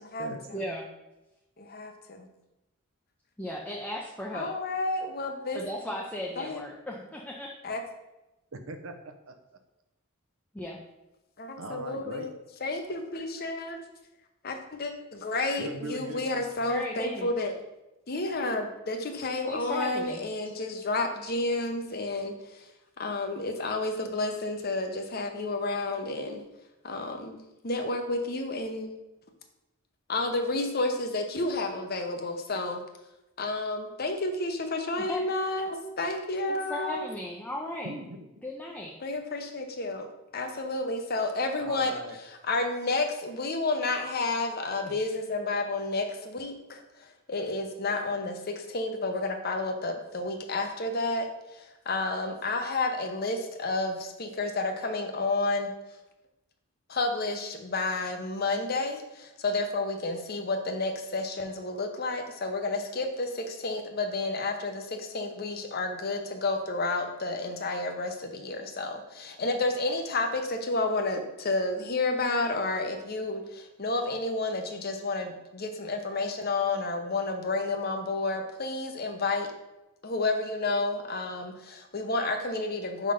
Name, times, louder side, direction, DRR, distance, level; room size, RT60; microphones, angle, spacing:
voice 1, 0.5-0.8 3.4-4.5 5.5-7.5 10.5-10.8 16.7-17.3 19.5-20.2 35.0-35.3 36.5-37.9 38.4-39.0, left 1 dB, 5° left, -3 dB, 0.5 m, -36 dB
voice 2, 1.6-2.3 4.3-5.6 6.4-6.6 7.6-7.8 11.4-12.3 12.6-13.8 14.4-17.5 18.1-22.7 23.0-26.4 26.8-27.4 27.6-28.9 30.1-32.8 33.4-37.1 39.0-40.1 40.3-42.0 42.4-46.8 47.3-55.7 56.9-79.5 80.0-83.1, left 2 dB, 45° left, 5 dB, 0.7 m, -31 dB
voice 3, 8.5-9.3 11.6-12.3 15.6-16.7 37.8-38.5 41.6-42.2, right 2 dB, 70° right, 6 dB, 0.7 m, -40 dB
5.6 x 3.7 x 5.0 m, 0.97 s
head